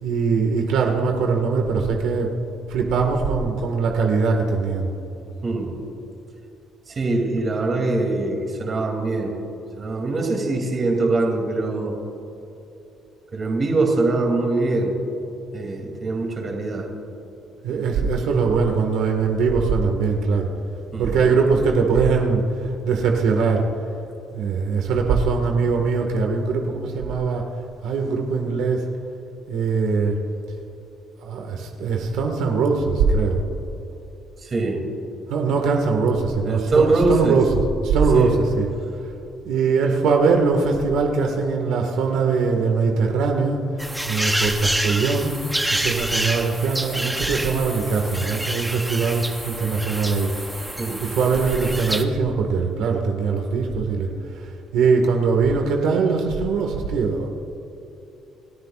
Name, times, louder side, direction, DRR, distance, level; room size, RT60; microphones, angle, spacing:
voice 1, 0.0-2.3 2.7-4.9 17.6-20.5 21.0-23.7 24.3-27.5 27.8-28.8 29.5-30.2 31.2-33.4 35.3-37.5 37.8-38.7 39.4-43.6 44.1-45.4 45.7-50.3 51.0-54.1 54.4-57.3, right 4 dB, 80° right, 2 dB, 1.7 m, -21 dB
voice 2, 5.4-5.7 6.9-9.4 9.8-12.0 13.3-14.9 15.5-16.9 20.9-21.2 34.4-34.8 36.5-37.4 38.1-38.3 50.8-51.0, right 2 dB, 30° right, 1 dB, 2.8 m, -23 dB
sound 1, 43.8-52.0, right 1 dB, 5° right, 0.8 m, -28 dB
29.0 x 14.0 x 2.5 m, 3.0 s
cardioid pair, 165°, 0 cm